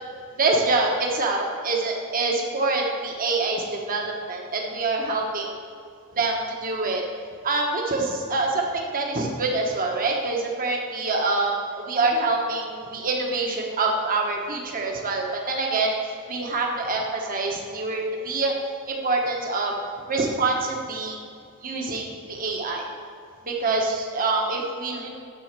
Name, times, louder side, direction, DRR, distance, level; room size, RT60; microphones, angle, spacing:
voice 1, 0.4-5.5 6.1-7.0 7.4-18.5 18.9-19.7 20.1-21.2 21.6-22.9 23.4-25.1, right 3 dB, 40° right, 0 dB, 1.1 m, -25 dB
7.6 x 7.1 x 6.6 m, 2.5 s
head